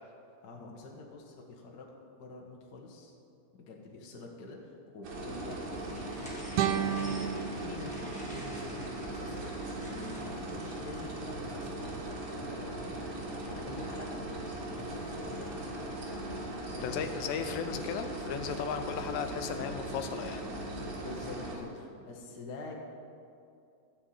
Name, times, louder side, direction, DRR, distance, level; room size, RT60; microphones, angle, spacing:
voice 1, 0.4-3.1 3.5-6.3 6.7-14.2 14.6-16.4 16.7-17.0 20.8-22.7, left 2 dB, 60° left, 0 dB, 1.0 m, -46 dB
sound 1, 5.0-21.6, right 1 dB, 55° right, 3.1 m, -39 dB
sound 2, 5.8-12.6, equal, 5° left, 1.2 m, -52 dB
sound 3, 6.5-9.6, right 9 dB, 90° right, 1.6 m, -34 dB
voice 2, 16.8-20.4, left 7 dB, 90° left, 7 dB, 2.5 m, -35 dB
14.5 x 5.5 x 8.6 m, 2.5 s
omnidirectional pair, 3.9 m